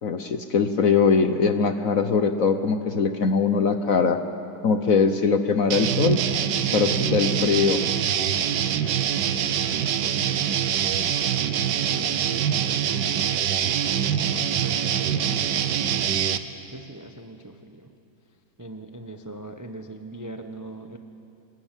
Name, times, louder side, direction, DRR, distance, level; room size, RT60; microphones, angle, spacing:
voice 1, 0.0-4.2 4.6-6.2 6.7-7.8, left 5 dB, 55° left, 8 dB, 1.1 m, -21 dB
sound 1, 5.7-16.4, right 9 dB, 65° right, 1.4 m, -24 dB
voice 2, 11.9-12.8 14.1-15.5 16.7-17.9 18.6-21.0, right 2 dB, 20° right, 6 dB, 0.5 m, -40 dB
25.5 x 20.5 x 9.0 m, 2.7 s
omnidirectional pair, 2.2 m